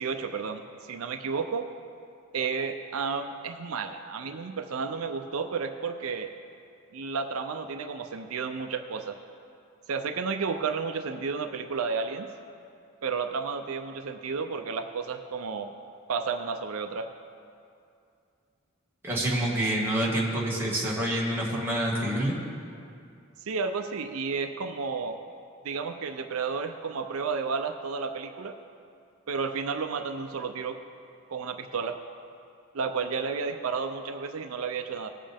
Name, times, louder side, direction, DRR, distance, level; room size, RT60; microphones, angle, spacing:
voice 1, 0.0-1.7 2.3-6.3 6.9-9.2 9.9-12.3 13.0-15.8 16.1-17.1 23.4-25.2 25.6-28.6 29.3-30.8 31.3-32.0 32.7-35.1, right 5 dB, 80° right, 7 dB, 0.5 m, -32 dB
voice 2, 19.0-22.4, right 1 dB, 10° right, -5 dB, 1.8 m, -27 dB
18.0 x 7.5 x 3.5 m, 2.5 s
head